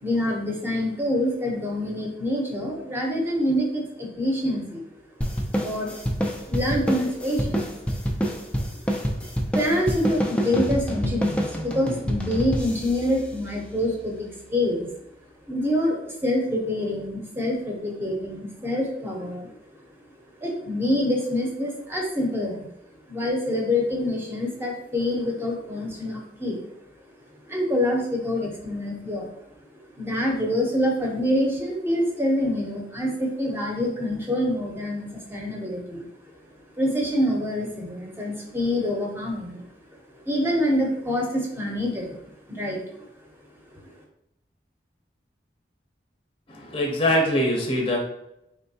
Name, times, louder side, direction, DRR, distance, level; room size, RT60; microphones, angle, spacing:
voice 1, 0.0-4.8 5.6-6.0 6.4-7.7 8.3-8.4 8.8-8.9 9.5-14.9 15.4-19.6 20.4-22.7 23.1-26.6 27.5-29.3 30.0-36.4 36.8-39.6 40.2-42.2 42.5-43.1 43.7-43.9, left 1 dB, 15° right, -1 dB, 0.8 m, -26 dB
sound 1, 5.2-14.0, equal, 5° left, 0.4 m, -28 dB
voice 2, 46.7-48.0, left 1 dB, 30° left, 0 dB, 0.8 m, -22 dB
4.4 x 3.3 x 2.8 m, 0.84 s
head